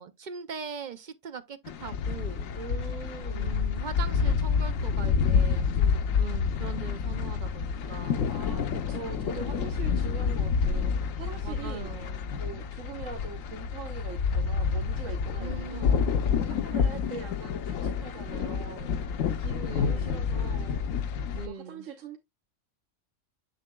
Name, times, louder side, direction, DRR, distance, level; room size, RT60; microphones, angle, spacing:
voice 1, 0.0-2.5 3.3-8.3 9.3-9.8 11.4-12.4 15.4-16.2 19.7-20.3 21.3-21.9, right 6 dB, 55° right, 0.5 m, -41 dB
sound 1, 1.7-21.5, left 6 dB, 90° left, 1.1 m, -28 dB
voice 2, 2.5-3.6 8.3-21.0 21.4-22.2, right 6 dB, 75° right, 1.2 m, -43 dB
7.2 x 6.8 x 2.2 m
omnidirectional pair, 1.3 m